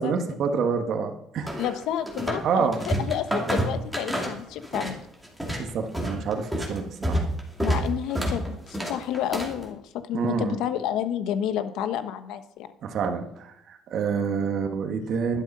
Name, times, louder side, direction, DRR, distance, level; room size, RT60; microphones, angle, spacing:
voice 1, 0.0-1.6 2.4-2.8 5.6-7.2 8.2-8.3 10.1-10.6 12.8-15.4, right 5 dB, 45° right, 5 dB, 1.6 m, -27 dB
sound 1, 1.5-2.5 2.7-5.0 5.2-9.6, right 1 dB, ahead, 2.5 m, -28 dB
voice 2, 1.6-5.0 7.6-12.7, left 10 dB, 70° left, 10 dB, 1.2 m, -30 dB
11.5 x 11.5 x 5.5 m, 0.79 s
cardioid pair, 170°, 0 cm